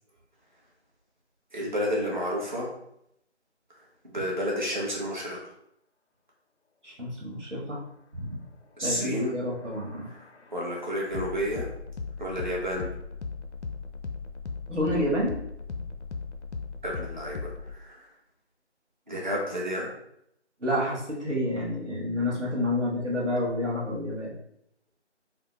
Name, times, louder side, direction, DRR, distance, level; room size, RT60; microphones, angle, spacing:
voice 1, 1.5-2.7 4.0-5.4 8.8-9.3 10.5-11.7 12.2-12.9 16.8-17.5 17.8-18.0 19.1-19.9, equal, 40° right, -4 dB, 0.9 m, -30 dB
voice 2, 6.8-7.8 8.1-8.4 8.8-10.1 14.7-15.4 20.6-24.3, left 1 dB, 80° right, -3 dB, 1.3 m, -29 dB
sound 1, 9.1-17.8, left 4 dB, 75° left, 0.5 m, -38 dB
3.5 x 2.0 x 3.1 m, 0.74 s
figure-of-eight pair, 170°, 35 cm